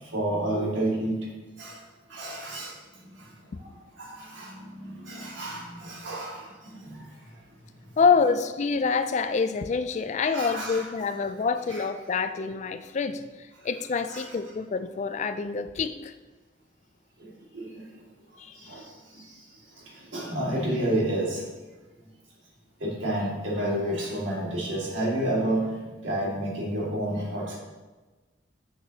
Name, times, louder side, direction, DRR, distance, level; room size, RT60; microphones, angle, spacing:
voice 1, 0.1-1.3 1.6-1.8 2.1-2.8 3.2-3.3 4.0-7.0 10.3-10.8 11.3-11.4 11.7-11.8 14.1-14.3 17.2-17.8 18.6-19.2 20.0-21.4 22.8-27.6, right 1 dB, 80° right, -4 dB, 2.1 m, -30 dB
voice 2, 8.0-13.2 13.6-16.1 18.4-18.6, left 5 dB, 40° left, 10 dB, 0.3 m, -26 dB
7.9 x 6.7 x 2.8 m, 1.2 s
head